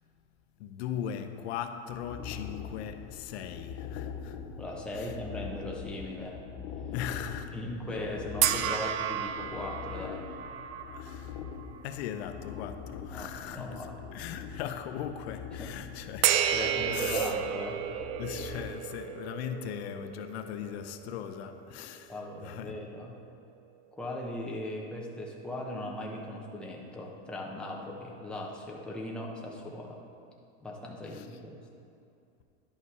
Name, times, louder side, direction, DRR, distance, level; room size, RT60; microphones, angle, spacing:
voice 1, 0.6-4.4 4.9-5.2 6.9-7.6 10.9-11.4 11.8-16.4 16.9-17.3 18.2-22.8 31.1-31.3, left 9 dB, 80° left, 0.7 m, -39 dB
sound 1, 1.9-18.7, left 7 dB, 40° left, 0.7 m, -43 dB
voice 2, 4.6-6.4 7.5-10.2 13.1-14.3 15.6-15.7 16.5-17.8 22.1-23.2 24.0-30.0 30.6-31.5, left 1 dB, 5° left, 0.9 m, -38 dB
sound 2, 8.4-11.9 12.5-12.6 16.2-22.6, right 10 dB, 65° right, 0.6 m, -32 dB
10.5 x 5.6 x 4.8 m
supercardioid pair, 160°, 32 cm